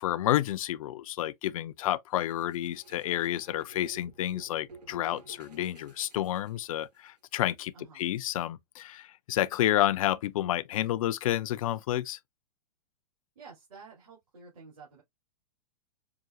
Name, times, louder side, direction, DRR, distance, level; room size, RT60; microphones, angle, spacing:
voice 1, 0.0-12.2, left 13 dB, 55° left, 0.4 m, -30 dB
sound 1, 2.2-7.1, right 4 dB, 75° right, 1.0 m, -53 dB
voice 2, 7.7-8.1 13.3-15.0, right 4 dB, 60° right, 2.7 m, -51 dB
5.7 x 2.4 x 2.4 m
figure-of-eight pair, 105°, 21 cm